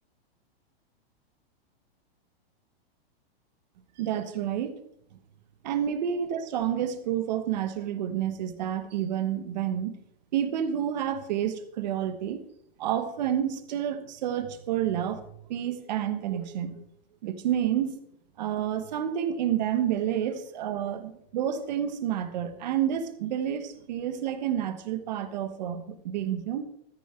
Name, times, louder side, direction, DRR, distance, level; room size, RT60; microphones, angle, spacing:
voice 1, 4.0-4.8 5.6-9.9 10.3-12.4 12.8-15.2 15.5-16.8 17.2-18.0 18.4-21.0 21.3-26.6, right 10 dB, 45° right, 11 dB, 1.2 m, -29 dB
13.5 x 9.7 x 4.4 m, 0.70 s
supercardioid pair, 175°, 30 cm